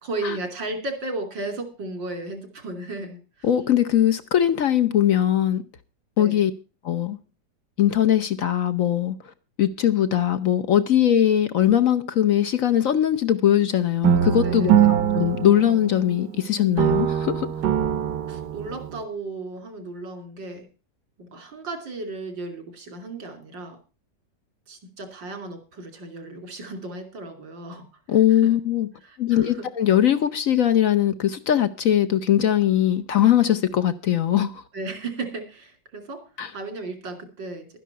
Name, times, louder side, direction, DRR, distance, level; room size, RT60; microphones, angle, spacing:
voice 1, 0.0-3.5 6.2-6.4 14.4-14.9 18.3-20.7 21.2-23.8 24.7-27.9 28.3-28.5 29.0-29.7 34.7-36.2 36.5-37.7, right 2 dB, 90° right, 3.5 m, -35 dB
voice 2, 3.4-5.6 6.2-6.5 6.8-7.2 7.8-9.1 9.6-17.5 28.1-28.9 29.2-34.6 36.4-36.5, left 11 dB, 60° left, 1.0 m, -20 dB
sound 1, 14.0-16.4 16.8-19.0, right 10 dB, 70° right, 1.4 m, -22 dB
12.0 x 10.0 x 5.6 m
omnidirectional pair, 1.9 m